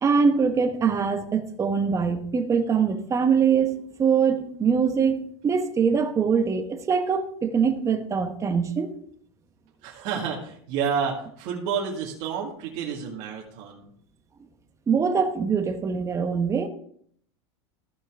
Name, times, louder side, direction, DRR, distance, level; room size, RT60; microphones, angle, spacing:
voice 1, 0.0-8.9 14.9-16.7, right 6 dB, 20° right, 1.1 m, -23 dB
voice 2, 9.8-13.9, right 6 dB, 55° right, 2.0 m, -30 dB
14.5 x 5.5 x 3.6 m
supercardioid pair, 130°, 14 cm